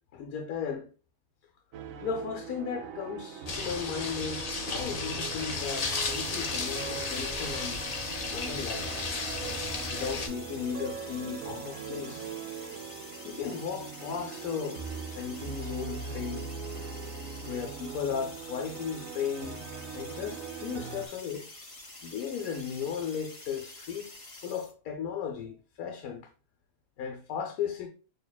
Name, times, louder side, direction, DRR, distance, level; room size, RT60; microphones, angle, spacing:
voice 1, 0.1-0.9 2.0-7.8 8.3-8.9 9.9-12.3 13.2-14.8 15.1-16.5 17.5-19.6 19.9-21.5 22.0-24.1 24.4-26.3 27.0-27.9, left 7 dB, 80° left, 1.1 m, -36 dB
sound 1, 1.7-21.1, right 6 dB, 75° right, 1.0 m, -41 dB
sound 2, 3.5-10.3, left 4 dB, 60° left, 0.4 m, -34 dB
sound 3, 5.5-24.7, left 2 dB, 30° left, 0.8 m, -48 dB
6.5 x 2.8 x 2.3 m
omnidirectional pair, 1.5 m